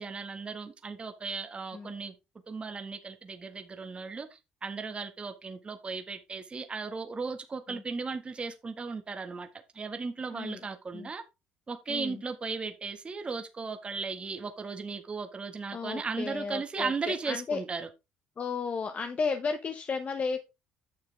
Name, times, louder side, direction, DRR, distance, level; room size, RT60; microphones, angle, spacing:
voice 1, 0.0-2.1 2.5-9.5 9.7-11.2 11.7-17.9, right 4 dB, 30° right, 1.6 m, -36 dB
voice 2, 10.3-10.6 10.9-11.1 11.9-12.2 15.7-17.6 18.4-20.4, left 5 dB, 40° left, 1.2 m, -33 dB
9.8 x 6.6 x 3.5 m
supercardioid pair, 80°, 4 cm